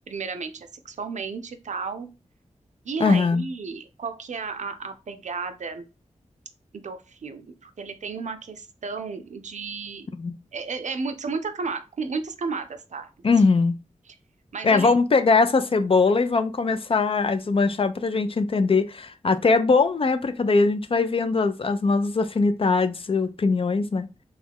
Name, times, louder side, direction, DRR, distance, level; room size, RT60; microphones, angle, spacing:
voice 1, 0.1-2.1 2.8-5.9 6.7-10.1 10.5-13.3 14.5-14.9, right 4 dB, 70° right, 0.5 m, -33 dB
voice 2, 3.0-3.5 10.2-10.3 13.2-13.8 14.6-24.1, left 4 dB, 45° left, 0.4 m, -21 dB
3.1 x 2.3 x 3.4 m
cardioid pair, 55°, 13 cm